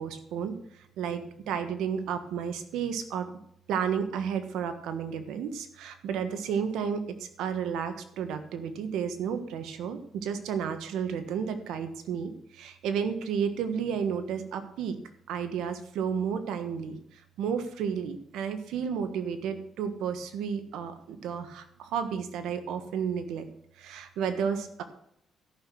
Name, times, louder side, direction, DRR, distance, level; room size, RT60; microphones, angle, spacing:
voice 1, 0.0-3.3 3.7-15.0 15.3-23.5 23.8-24.8, right 7 dB, 85° right, 9 dB, 1.4 m, -32 dB
13.5 x 6.1 x 6.3 m, 0.70 s
cardioid pair, 90°, 0 cm